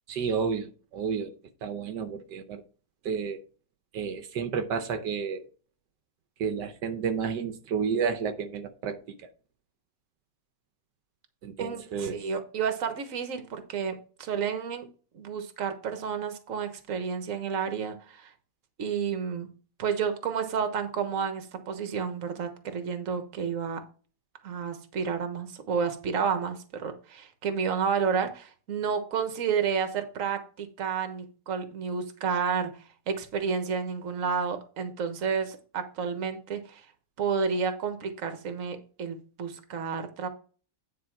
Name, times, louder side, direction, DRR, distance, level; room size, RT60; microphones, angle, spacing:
voice 1, 0.1-1.3 1.6-2.6 3.0-3.4 3.9-5.4 6.4-9.2 11.4-12.2, right 6 dB, 85° right, 1.5 m, -31 dB
voice 2, 11.6-14.9 15.1-18.3 18.8-19.5 19.8-23.8 24.4-32.7 33.1-36.8 37.2-40.3, right 6 dB, 50° right, 1.5 m, -31 dB
9.5 x 4.7 x 4.6 m
omnidirectional pair, 1.9 m